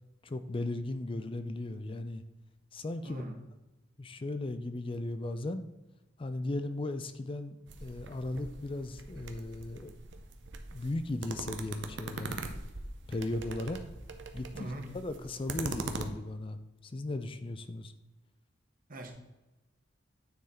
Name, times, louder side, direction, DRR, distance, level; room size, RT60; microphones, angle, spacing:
voice 1, 0.2-2.2 2.7-3.2 4.0-5.6 6.2-9.9 10.7-12.4 13.1-13.8 14.3-14.7 14.9-17.9, left 2 dB, 30° left, 10 dB, 0.4 m, -36 dB
voice 2, 3.0-3.4 14.5-14.9 18.9-19.1, right 1 dB, 45° right, 3 dB, 1.2 m, -41 dB
sound 1, 7.7-16.0, right 3 dB, 65° right, 0.8 m, -42 dB
9.3 x 4.0 x 4.2 m, 1.0 s
head